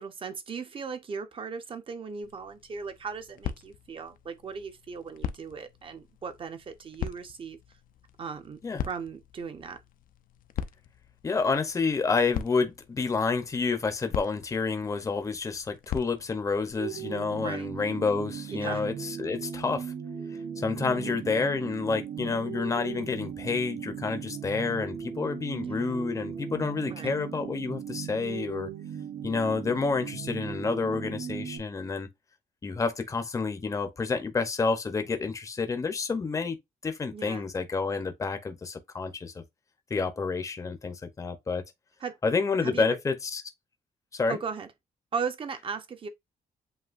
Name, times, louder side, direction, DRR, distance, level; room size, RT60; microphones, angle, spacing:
voice 1, 0.0-7.6 8.2-9.8 17.4-17.7 18.5-18.8 20.8-21.2 25.6-26.0 26.9-27.1 37.1-37.5 42.0-42.2 42.6-43.0 44.3-44.7 45.1-46.1, right 5 dB, 35° right, 0.8 m, -37 dB
sound 1, 2.2-16.7, left 9 dB, 65° left, 0.5 m, -41 dB
voice 2, 11.2-19.9 20.6-28.7 29.2-32.1 32.6-36.6 36.8-39.4 39.9-41.6 42.2-43.4 44.1-44.4, left 4 dB, 20° left, 0.7 m, -29 dB
sound 2, 16.7-31.6, right 8 dB, 80° right, 1.1 m, -38 dB
7.9 x 2.7 x 2.5 m
cardioid pair, 155°, 15 cm